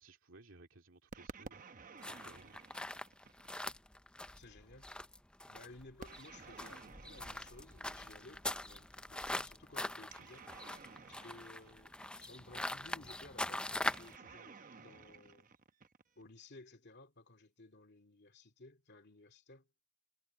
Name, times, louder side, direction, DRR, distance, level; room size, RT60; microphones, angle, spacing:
voice 1, 0.0-1.6 2.0-2.7, right 2 dB, 65° right, 2.6 m, -59 dB
sound 1, 1.1-3.8 6.0-8.4 10.0-12.5 13.9-16.3, right 4 dB, 40° right, 0.9 m, -54 dB
sound 2, 2.0-14.2, left 1 dB, 5° left, 0.5 m, -43 dB
voice 2, 4.3-4.9 5.5-10.5 11.1-15.5 16.2-19.7, left 2 dB, 55° left, 2.5 m, -57 dB
head